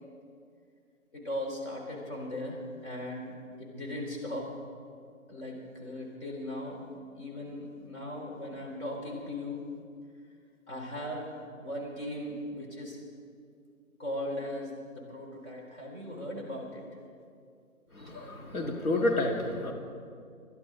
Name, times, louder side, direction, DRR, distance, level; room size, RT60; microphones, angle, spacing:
voice 1, 1.1-3.3 3.6-4.5 5.3-6.8 7.1-9.6 10.7-11.3 11.6-13.0 14.0-16.8, left 1 dB, 50° left, -2 dB, 4.0 m, -38 dB
voice 2, 17.9-19.7, left 2 dB, 75° left, 1 dB, 2.2 m, -30 dB
22.5 x 11.5 x 3.8 m, 2.3 s
hypercardioid pair, 160°, 43 cm